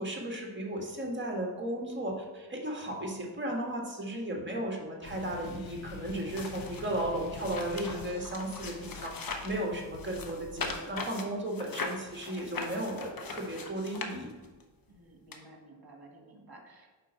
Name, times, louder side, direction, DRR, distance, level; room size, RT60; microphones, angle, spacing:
voice 1, 0.0-14.3, right 1 dB, 25° right, -1 dB, 1.8 m, -35 dB
sound 1, 5.0-10.8, left 5 dB, 75° left, 0.7 m, -47 dB
sound 2, 6.0-9.6 10.0-14.6 15.3-15.4, left 3 dB, 45° left, 1.0 m, -40 dB
voice 2, 10.0-10.3 14.9-16.9, right 2 dB, 50° right, 1 dB, 1.7 m, -54 dB
5.0 x 4.4 x 5.6 m, 1.3 s
cardioid pair, 55°, 47 cm